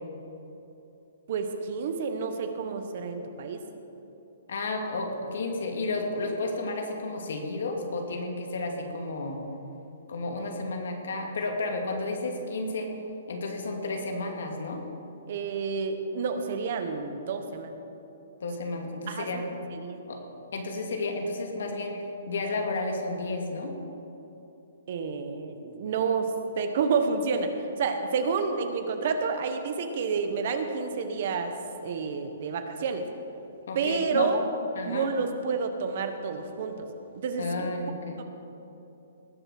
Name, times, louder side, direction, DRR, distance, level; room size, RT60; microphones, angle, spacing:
voice 1, 1.3-3.6 15.3-17.8 19.1-19.4 19.7-20.0 24.9-27.5 27.8-31.5 31.8-33.1 33.7-34.4 34.8-36.9 37.1-37.7 38.2-38.3, right 5 dB, 45° right, 7 dB, 1.1 m, -29 dB
voice 2, 4.5-9.4 10.1-12.9 13.3-14.8 18.4-19.5 20.1-20.2 20.5-22.0 22.3-23.7 33.7-34.3 34.8-35.1 37.4-38.2, left 2 dB, 70° left, 2 dB, 2.4 m, -32 dB
19.5 x 7.0 x 6.0 m, 3.0 s
hypercardioid pair, 170°, 0 cm